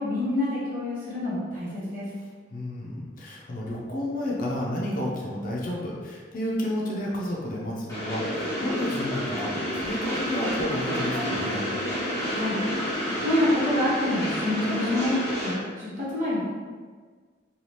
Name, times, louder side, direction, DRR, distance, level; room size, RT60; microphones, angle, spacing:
voice 1, 0.0-2.1 12.3-12.6 13.2-15.2 15.4-16.5, left 1 dB, 45° right, -9 dB, 1.1 m, -27 dB
voice 2, 2.5-11.7, left 1 dB, 45° left, -3 dB, 0.5 m, -31 dB
Train, 7.9-15.5, equal, 15° left, 0.8 m, -29 dB
2.7 x 2.3 x 3.2 m, 1.5 s
head